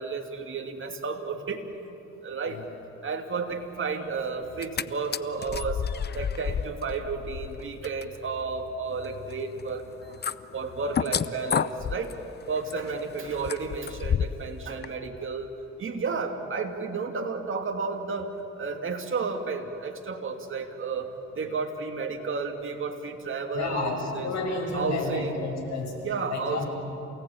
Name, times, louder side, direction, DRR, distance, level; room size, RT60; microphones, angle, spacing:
voice 1, 0.0-1.6 2.2-2.6 3.0-5.8 6.1-10.2 10.5-12.1 12.5-15.5 15.8-24.3 24.7-25.4 26.0-26.6, right 4 dB, 40° right, 4 dB, 2.7 m, -32 dB
sound 1, 4.4-4.8 5.1-14.5 14.8-14.9, left 7 dB, 35° left, 0.7 m, -32 dB
voice 2, 23.5-25.9 26.3-26.7, left 3 dB, 65° left, 0 dB, 6.5 m, -31 dB
28.0 x 18.0 x 8.7 m, 2.9 s
cardioid pair, 90°, 30 cm